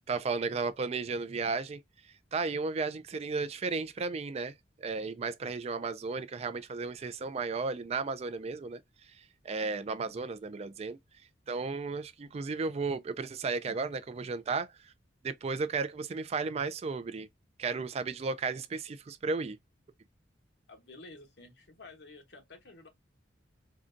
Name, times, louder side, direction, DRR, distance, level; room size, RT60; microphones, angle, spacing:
voice 1, 0.1-1.8 2.3-8.8 9.2-11.0 11.5-14.7 15.2-17.3 17.6-19.6, right 4 dB, 35° right, 0.3 m, -34 dB
voice 2, 20.7-22.9, left 3 dB, 65° left, 1.0 m, -51 dB
3.8 x 2.3 x 2.5 m
head